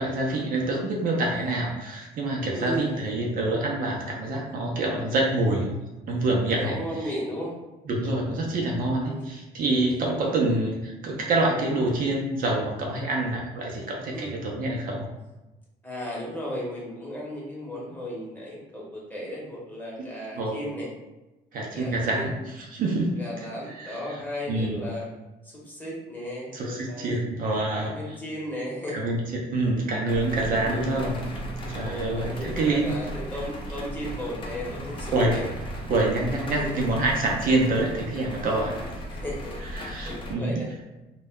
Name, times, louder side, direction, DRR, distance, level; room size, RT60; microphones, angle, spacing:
voice 1, 0.0-5.7 6.1-6.8 7.9-15.1 20.4-20.6 21.5-23.5 23.7-24.0 24.5-24.8 26.5-27.9 28.9-29.2 29.5-31.2 31.7-32.9 35.1-35.4 35.9-38.8 39.7-40.6, right 2 dB, 55° right, -1 dB, 0.6 m, -26 dB
voice 2, 2.5-2.9 4.2-4.4 6.5-7.5 9.0-9.2 9.6-10.4 14.1-14.4 15.8-20.9 21.7-22.3 23.1-25.1 25.4-27.1 27.7-29.0 29.8-30.0 30.6-30.9 31.8-35.5 36.5-36.9 39.1-40.7, equal, 10° left, -5 dB, 0.9 m, -35 dB
sound 1, 30.1-40.3, equal, 30° left, 0.5 m, -36 dB
2.2 x 2.0 x 3.5 m, 1.0 s
cardioid pair, 110°, 17 cm